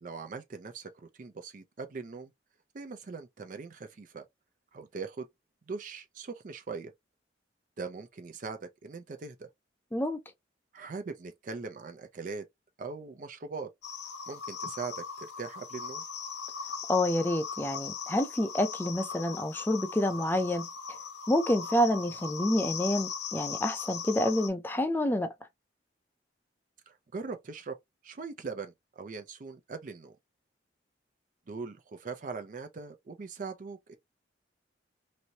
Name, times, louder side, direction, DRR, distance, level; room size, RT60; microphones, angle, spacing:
voice 1, 0.0-2.3 2.7-4.2 4.7-5.3 5.7-6.9 7.8-9.5 10.7-12.4 12.8-13.7 14.3-16.0 26.9-27.8 28.0-30.1 31.5-33.9, right 4 dB, 45° right, 0.4 m, -41 dB
sound 1, 13.8-24.5, left 6 dB, 70° left, 0.7 m, -39 dB
voice 2, 16.9-20.7 21.3-25.3, left 1 dB, 10° left, 0.4 m, -28 dB
3.0 x 2.7 x 2.7 m
head